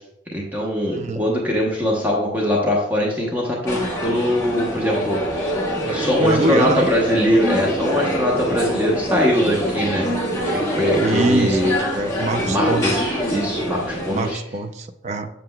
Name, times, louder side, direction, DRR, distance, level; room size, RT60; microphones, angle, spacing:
voice 1, 0.3-5.5 5.8-10.1 10.5-11.7 12.4-14.4, equal, 10° right, -3 dB, 0.8 m, -22 dB
voice 2, 0.9-1.2 6.2-6.9 11.0-13.0 14.1-15.3, right 2 dB, 40° right, 6 dB, 0.4 m, -23 dB
sound 1, 3.6-14.3, equal, 20° left, 1.4 m, -24 dB
7.5 x 6.6 x 2.2 m, 0.84 s
head